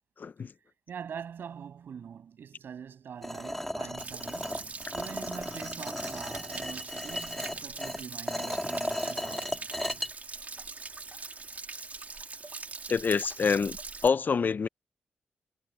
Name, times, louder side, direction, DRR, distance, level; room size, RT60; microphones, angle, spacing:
voice 1, 0.2-0.5 12.9-13.8 14.0-14.7, left 5 dB, 55° left, 0.7 m, -26 dB
voice 2, 0.9-9.6, right 7 dB, 70° right, 8.0 m, -44 dB
sound 1, 3.2-10.1, equal, 5° left, 2.1 m, -35 dB
Stream / Splash splatter / Trickle dribble, 4.0-14.1, right 4 dB, 45° right, 3.4 m, -42 dB
supercardioid pair, 40°, 4 cm